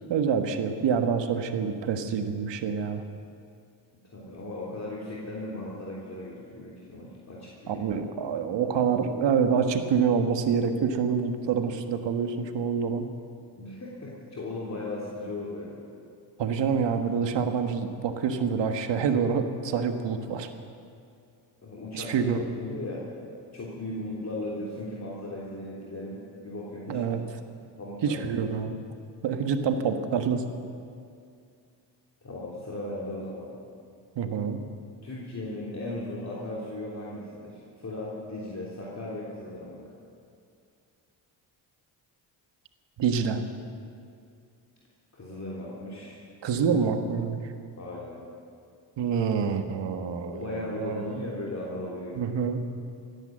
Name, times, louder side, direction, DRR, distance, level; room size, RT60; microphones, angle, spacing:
voice 1, 0.1-3.0 7.7-13.1 16.4-20.5 21.9-22.4 26.9-27.2 28.0-28.8 29.2-30.4 34.1-34.6 43.0-43.4 46.4-47.5 49.0-51.2 52.2-52.7, right 6 dB, 70° right, 7 dB, 1.4 m, -27 dB
voice 2, 4.1-7.9 13.6-15.8 21.6-23.1 23.5-27.0 27.8-28.2 32.2-33.5 35.0-39.8 45.1-46.2 47.8-48.2 50.3-52.2, left 1 dB, 35° left, -5 dB, 3.3 m, -37 dB
16.5 x 10.5 x 7.7 m, 2.4 s
supercardioid pair, 65°, 45 cm